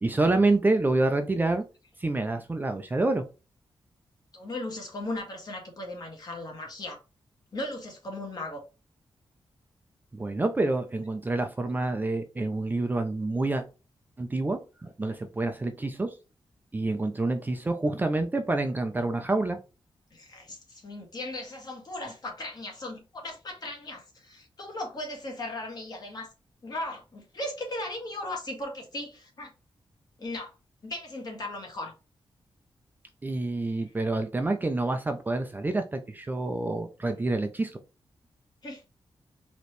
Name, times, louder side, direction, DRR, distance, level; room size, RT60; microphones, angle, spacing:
voice 1, 0.0-1.6 2.0-3.2 10.1-13.6 14.2-16.2 16.7-19.6 33.2-37.8, right 2 dB, 20° right, 0.5 m, -27 dB
voice 2, 4.3-7.0 7.5-8.6 20.1-26.3 26.6-29.5 30.2-30.5 30.8-31.9 38.6-38.8, left 1 dB, 45° left, 1.7 m, -37 dB
4.2 x 3.0 x 3.2 m
wide cardioid pair, 165°, 10 cm